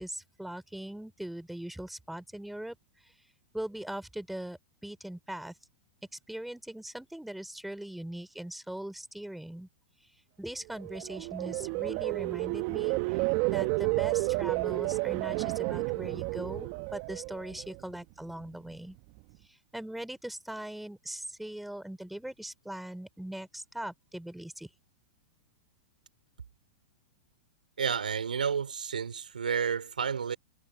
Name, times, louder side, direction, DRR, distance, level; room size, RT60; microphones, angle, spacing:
voice 1, 0.0-2.8 3.5-5.5 6.3-9.7 10.4-13.2 13.5-19.0 19.4-24.7, right 1 dB, ahead, 3.7 m, -40 dB
sound 1, 10.7-17.9 18.3-18.7, right 26 dB, 50° right, 1.0 m, -31 dB
voice 2, 27.8-30.4, right 6 dB, 90° right, 3.4 m, -31 dB
hypercardioid pair, 110°, 4 cm